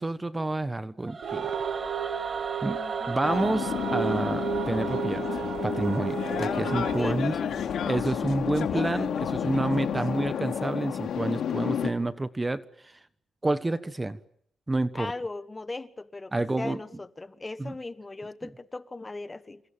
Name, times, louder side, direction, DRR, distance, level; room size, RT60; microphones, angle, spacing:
voice 1, 0.0-1.7 2.6-2.8 3.1-5.2 5.6-7.3 7.9-12.9 13.4-14.2 14.7-15.1 16.3-16.8 17.6-17.7 18.4-18.5, right 2 dB, 20° right, 13 dB, 1.2 m, -29 dB
Singing / Musical instrument, 1.0-8.1, right 3 dB, 35° right, 1.9 m, -38 dB
sound 1, 1.2-8.1, right 9 dB, 85° right, 1.4 m, -34 dB
voice 2, 2.7-3.2 6.9-7.5 8.7-9.1 14.9-19.6, left 2 dB, 20° left, 13 dB, 1.4 m, -38 dB
sound 2, 3.2-11.9, left 8 dB, 75° left, 2.8 m, -30 dB
28.0 x 27.5 x 7.3 m, 0.68 s
cardioid pair, 95°, 0 cm